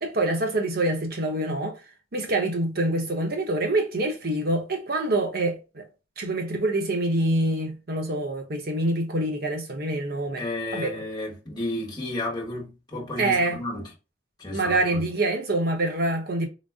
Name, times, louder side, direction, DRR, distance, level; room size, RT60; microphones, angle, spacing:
voice 1, 0.0-1.8 2.1-5.8 6.2-10.4 10.7-10.9 13.2-13.6 14.5-16.5, right 2 dB, 55° right, 0.8 m, -26 dB
voice 2, 10.4-13.9 14.4-15.1, left 1 dB, 20° left, 1.2 m, -32 dB
4.0 x 2.0 x 3.6 m
head